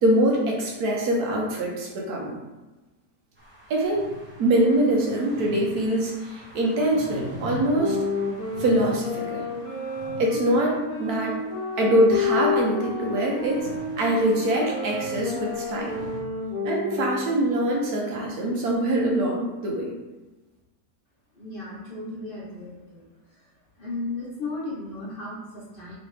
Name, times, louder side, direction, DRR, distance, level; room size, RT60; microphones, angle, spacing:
voice 1, 0.0-2.4 3.7-4.1 4.4-8.0 8.6-9.5 10.2-11.4 11.8-13.7 14.0-16.0 16.6-19.9, right 1 dB, 70° right, -2 dB, 1.3 m, -23 dB
sound 1, 3.4-16.2, equal, 10° right, 0.7 m, -43 dB
sound 2, 7.7-17.4, left 3 dB, 65° left, 1.2 m, -30 dB
voice 2, 21.3-23.0 23.3-23.5 23.8-25.9, left 2 dB, 40° left, -8 dB, 1.0 m, -35 dB
4.0 x 3.1 x 3.2 m, 1.1 s
omnidirectional pair, 1.7 m